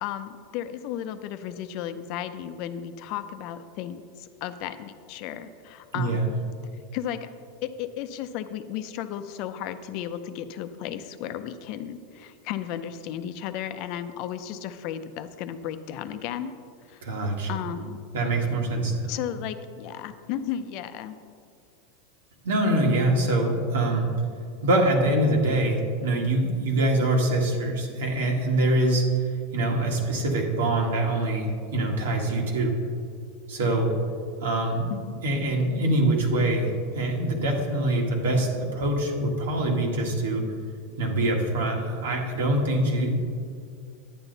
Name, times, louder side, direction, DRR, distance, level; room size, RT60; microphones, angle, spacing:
voice 1, 0.0-6.2 6.9-7.3 7.6-16.5 16.9-17.0 17.5-18.1 19.1-21.2 34.9-35.2, left 10 dB, 55° left, 10 dB, 0.6 m, -34 dB
voice 2, 5.9-6.3 17.0-17.7 18.1-19.1 22.4-24.1 24.6-32.7 33.5-33.9 34.4-34.9 35.2-40.4 41.0-43.2, right 1 dB, 85° right, 0 dB, 1.8 m, -24 dB
10.0 x 9.0 x 4.0 m, 2.3 s
supercardioid pair, 130°, 0 cm